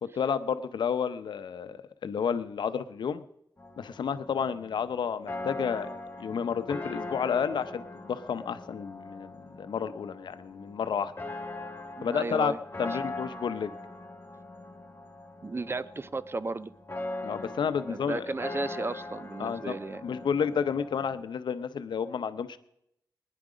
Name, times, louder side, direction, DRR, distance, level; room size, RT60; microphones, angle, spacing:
voice 1, 0.0-3.2 3.8-11.1 12.0-13.7 17.2-18.3 19.4-19.8 20.0-22.6, left 7 dB, 80° left, 13 dB, 0.7 m, -31 dB
sound 1, 3.6-21.2, left 2 dB, 25° left, 2.4 m, -41 dB
voice 2, 12.0-12.6 15.4-16.7 17.9-20.1, right 3 dB, 30° right, 17 dB, 0.5 m, -34 dB
20.5 x 10.0 x 5.0 m, 0.79 s
cardioid pair, 60°, 8 cm